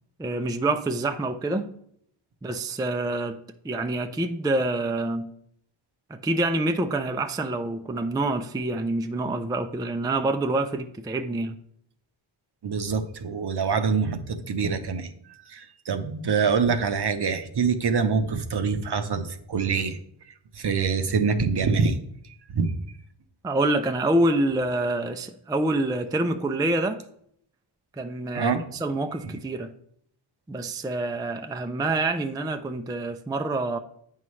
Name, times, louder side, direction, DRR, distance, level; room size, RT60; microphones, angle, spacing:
voice 1, 0.2-1.7 2.4-5.3 6.1-11.6 23.4-27.0 27.9-29.7 30.5-33.8, right 2 dB, 10° right, 7 dB, 0.3 m, -26 dB
voice 2, 12.6-15.1 15.5-20.0 20.6-22.0 22.5-22.7 28.3-28.6, right 5 dB, 55° right, 8 dB, 0.8 m, -25 dB
8.5 x 5.6 x 3.1 m, 0.69 s
wide cardioid pair, 85°, 49 cm